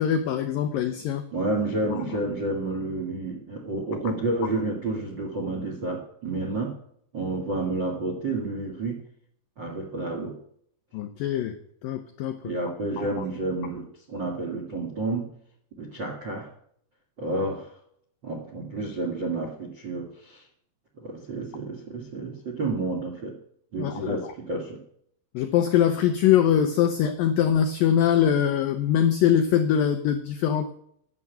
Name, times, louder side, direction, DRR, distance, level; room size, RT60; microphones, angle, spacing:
voice 1, 0.0-1.2 1.9-2.0 10.9-11.6 11.8-12.4 13.0-13.1 23.8-24.3 25.3-30.7, left 9 dB, 90° left, 8 dB, 2.0 m, -23 dB
voice 2, 1.3-6.7 7.1-9.0 9.6-10.4 12.4-15.3 15.8-16.5 17.2-17.8 18.2-20.4 21.0-23.4 23.7-24.8, right 2 dB, 60° right, 1 dB, 1.1 m, -30 dB
11.0 x 7.3 x 9.1 m, 0.67 s
omnidirectional pair, 5.1 m